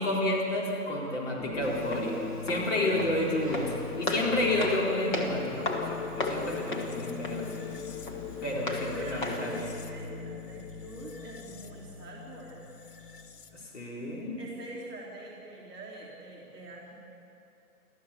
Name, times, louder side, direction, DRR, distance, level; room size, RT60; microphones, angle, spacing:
voice 1, 0.0-3.7 4.0-7.7 8.4-9.5 13.5-14.4, left 1 dB, 50° left, -3 dB, 4.3 m, -30 dB
sound 1, 1.4-13.7, left 5 dB, 85° left, 1.9 m, -40 dB
Walk footsteps, 1.6-9.6, left 2 dB, 30° left, 1.8 m, -36 dB
voice 2, 8.3-12.7 14.4-16.9, right 2 dB, 10° right, -13 dB, 3.0 m, -45 dB
30.0 x 13.5 x 7.2 m, 2.7 s
hypercardioid pair, 170°, 46 cm